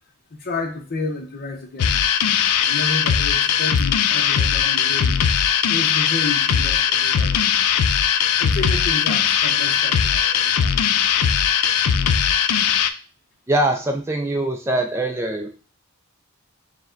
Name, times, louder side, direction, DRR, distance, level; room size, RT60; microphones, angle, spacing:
voice 1, 0.3-2.0 2.7-5.1 5.7-7.5 8.4-10.8, left 3 dB, 45° left, 4 dB, 0.8 m, -31 dB
sound 1, 1.8-12.9, left 8 dB, 90° left, 0.4 m, -19 dB
voice 2, 13.5-15.5, right 1 dB, 10° right, 4 dB, 0.3 m, -22 dB
4.8 x 2.2 x 3.7 m, 0.37 s
head